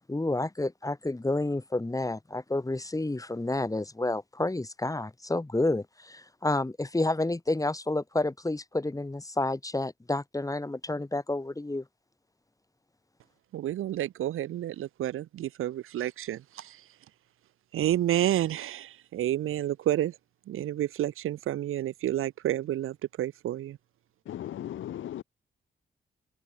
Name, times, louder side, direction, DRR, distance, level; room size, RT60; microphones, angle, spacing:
voice 1, 0.1-11.8, left 2 dB, 15° left, 1.6 m, -30 dB
voice 2, 13.5-16.8 17.7-20.1 20.5-23.8, right 12 dB, 85° right, 2.1 m, -30 dB
voice 3, 24.3-25.2, left 11 dB, 70° left, 0.6 m, -37 dB
supercardioid pair, 50°, 21 cm